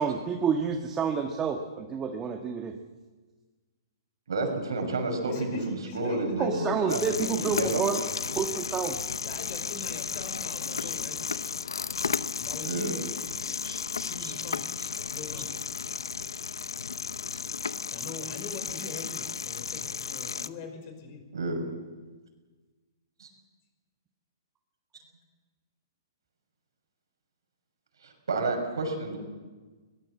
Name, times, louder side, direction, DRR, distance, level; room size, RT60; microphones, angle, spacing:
voice 1, 0.0-2.8 6.4-8.0 8.3-9.0, right 6 dB, 20° right, 4 dB, 1.4 m, -29 dB
voice 2, 4.3-8.4 10.8-10.9 12.6-13.0 13.6-13.8 14.2-14.3 14.8-14.9 21.3-21.6 23.2-23.3 28.0-29.2, right 2 dB, 80° right, 4 dB, 6.1 m, -31 dB
voice 3, 5.3-7.5 9.2-11.3 12.4-13.1 14.1-15.5 17.9-21.2, left 4 dB, 40° left, 6 dB, 5.5 m, -43 dB
sound 1, 6.9-20.5, left 5 dB, 85° left, 0.7 m, -34 dB
22.0 x 19.0 x 7.6 m, 1.3 s
hypercardioid pair, 130°, 2 cm